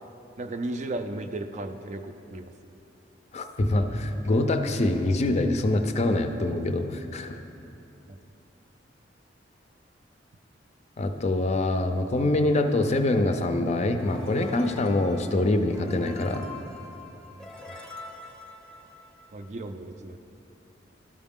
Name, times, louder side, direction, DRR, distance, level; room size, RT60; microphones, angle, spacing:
voice 1, 0.4-2.5 19.3-20.2, right 2 dB, 40° right, 8 dB, 0.4 m, -34 dB
voice 2, 3.3-7.4 11.0-16.5, left 2 dB, 35° left, 6 dB, 0.4 m, -25 dB
sound 1, 14.0-19.5, left 1 dB, 5° left, 0.7 m, -44 dB
12.5 x 4.8 x 3.6 m, 2.8 s
head